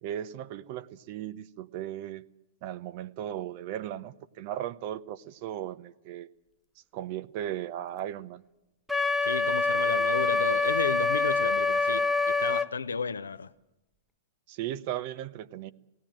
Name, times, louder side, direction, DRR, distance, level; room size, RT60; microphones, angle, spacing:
voice 1, 0.0-2.3 2.6-6.3 6.9-8.4 14.5-15.7, right 11 dB, 50° right, 0.8 m, -36 dB
Wind instrument woodwind instrument, 8.9-12.7, left 3 dB, ahead, 0.7 m, -26 dB
voice 2, 9.2-13.5, left 5 dB, 85° left, 0.8 m, -32 dB
17.5 x 17.5 x 9.0 m
hypercardioid pair, 110°, 0 cm